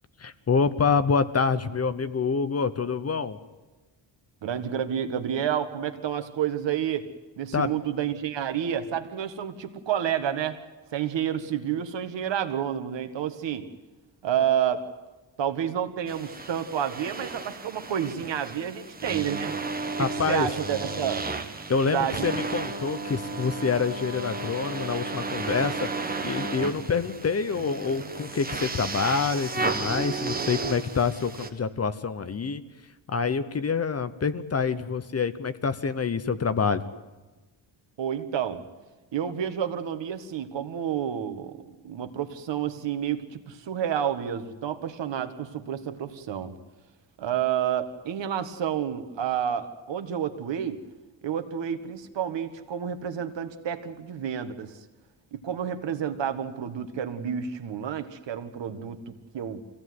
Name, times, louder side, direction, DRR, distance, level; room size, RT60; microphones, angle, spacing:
voice 1, 0.2-3.4 7.5-7.7 20.0-20.5 21.7-25.9 26.2-32.6 33.1-36.8, left 5 dB, 35° left, 13 dB, 0.9 m, -26 dB
voice 2, 4.4-7.1 7.4-10.6 10.9-13.7 14.2-14.9 15.4-19.6 20.0-21.2 21.9-22.4 38.0-38.6 39.1-41.6 41.8-46.5 47.2-50.8 51.2-54.8 55.3-59.6, right 9 dB, 70° right, 8 dB, 1.7 m, -30 dB
sound 1, 16.1-31.5, right 3 dB, 20° right, 1.6 m, -33 dB
25.0 x 16.5 x 9.6 m, 1.2 s
wide cardioid pair, 150°, 45 cm